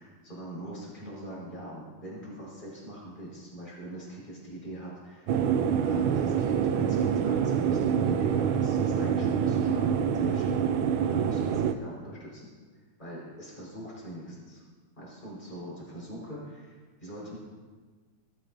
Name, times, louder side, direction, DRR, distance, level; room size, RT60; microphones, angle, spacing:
voice 1, 0.0-5.3 5.8-9.9 10.1-10.8 11.1-12.5 12.7-14.6 15.0-16.7 17.0-17.4, right 1 dB, 20° left, -5 dB, 5.0 m, -42 dB
sound 1, 5.3-11.7, right 7 dB, 85° right, 1.5 m, -26 dB
19.0 x 13.5 x 2.7 m, 1.4 s
omnidirectional pair, 2.2 m